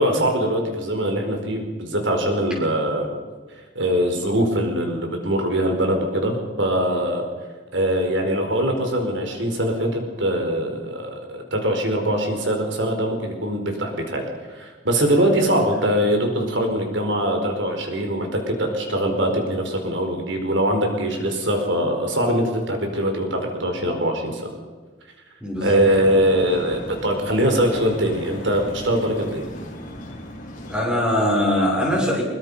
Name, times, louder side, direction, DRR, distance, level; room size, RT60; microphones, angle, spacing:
voice 1, 0.0-3.1 3.7-7.2 7.7-14.2 14.5-24.5 25.6-29.4, equal, 75° right, 3 dB, 4.5 m, -22 dB
voice 2, 25.4-26.1 30.7-32.2, left 1 dB, 5° right, -2 dB, 6.4 m, -22 dB
sound 1, 25.6-30.8, left 1 dB, 45° left, 4.2 m, -37 dB
24.5 x 22.5 x 5.5 m, 1.4 s
head